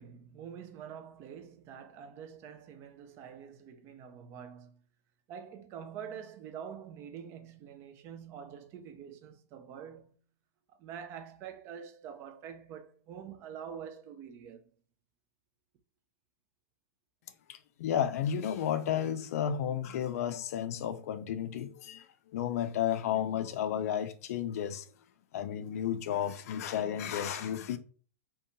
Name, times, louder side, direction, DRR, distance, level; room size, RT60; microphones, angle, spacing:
voice 1, 0.0-4.8 5.3-10.2 10.7-14.6, right 8 dB, 30° right, 0.4 m, -46 dB
voice 2, 17.5-22.0 22.3-24.8 25.3-27.8, left 9 dB, 65° left, 0.4 m, -32 dB
2.5 x 2.2 x 2.7 m
hypercardioid pair, 145°, 9 cm